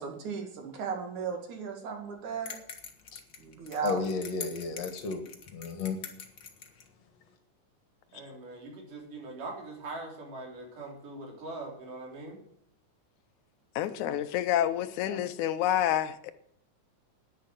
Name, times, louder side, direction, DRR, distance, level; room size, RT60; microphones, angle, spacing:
voice 1, 0.0-2.6 3.4-4.0, right 6 dB, 70° right, 3.6 m, -36 dB
sound 1, 2.5-6.9, left 6 dB, 45° left, 1.8 m, -44 dB
voice 2, 3.8-6.0, left 4 dB, 60° left, 2.4 m, -33 dB
voice 3, 8.1-12.4 13.8-14.2 15.1-15.2, right 2 dB, 90° right, 5.1 m, -42 dB
voice 4, 13.8-16.3, left 11 dB, 75° left, 2.1 m, -28 dB
10.5 x 10.0 x 7.6 m
omnidirectional pair, 3.6 m